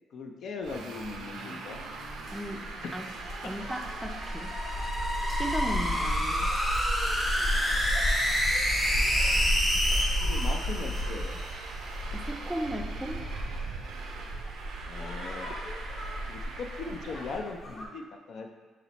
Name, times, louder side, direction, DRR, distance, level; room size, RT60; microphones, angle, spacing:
voice 1, 0.1-1.8 3.4-3.5 7.0-7.1 7.4-7.9 8.9-9.0 10.2-11.4 14.9-15.6 16.3-18.5, left 4 dB, 65° left, 4 dB, 0.3 m, -40 dB
Traffic noise roadway noise, 0.6-17.4, right 3 dB, 85° right, 0.5 m, -41 dB
sound 1, 2.0-17.9, left 1 dB, 45° left, 0.9 m, -34 dB
voice 2, 2.3-3.0 3.4-4.5 5.4-6.5 12.1-13.2, equal, 5° right, 3 dB, 0.4 m, -36 dB
sound 2, 4.0-11.5, equal, 10° left, 0.8 m, -29 dB
5.5 x 2.0 x 4.0 m, 1.4 s
cardioid pair, 90°, 0 cm